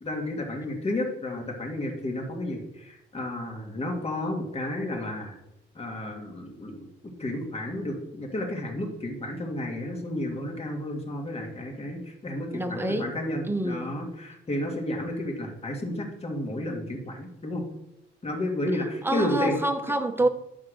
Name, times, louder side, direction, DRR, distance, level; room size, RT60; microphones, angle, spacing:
voice 1, 0.0-5.4 5.8-6.9 7.2-17.6 18.2-19.5, left 1 dB, 30° left, 1 dB, 2.0 m, -32 dB
voice 2, 12.5-13.1 13.4-13.9 19.0-20.3, right 1 dB, 10° right, 8 dB, 0.9 m, -27 dB
9.8 x 3.6 x 6.3 m, 0.82 s
cardioid pair, 90°, 20 cm